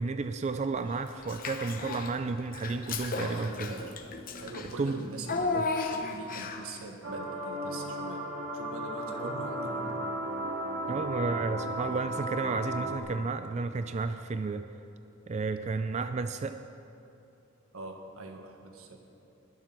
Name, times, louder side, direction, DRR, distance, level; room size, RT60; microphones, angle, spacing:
voice 1, 0.0-3.7 4.8-5.0 5.5-5.7 9.2-9.3 10.9-14.7 15.3-16.6, right 4 dB, 35° right, 9 dB, 0.3 m, -32 dB
Child speech kid speaking / Bathtub (filling or washing), 1.2-2.2 2.5-6.8, left 3 dB, 40° left, 0.9 m, -34 dB
voice 2, 3.2-4.0 4.4-8.3 8.5-9.9 17.7-19.0, right 2 dB, 90° right, 4 dB, 1.5 m, -43 dB
sound 1, 7.0-13.0, right 1 dB, 65° right, 2.0 m, -35 dB
20.0 x 7.5 x 6.0 m, 2.9 s
head